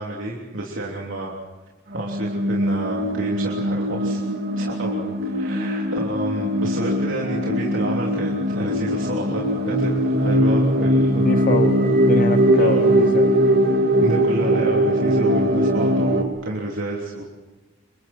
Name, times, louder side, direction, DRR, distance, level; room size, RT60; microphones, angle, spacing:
voice 1, 0.0-1.3 1.9-4.2 4.6-11.2 12.6-12.8 14.0-17.2, right 1 dB, 80° right, -3 dB, 3.3 m, -30 dB
sound 1, 1.9-16.2, equal, 55° right, 2.3 m, -20 dB
voice 2, 11.2-13.4, left 3 dB, 45° left, 10 dB, 0.8 m, -25 dB
29.5 x 25.0 x 4.5 m, 1.2 s
head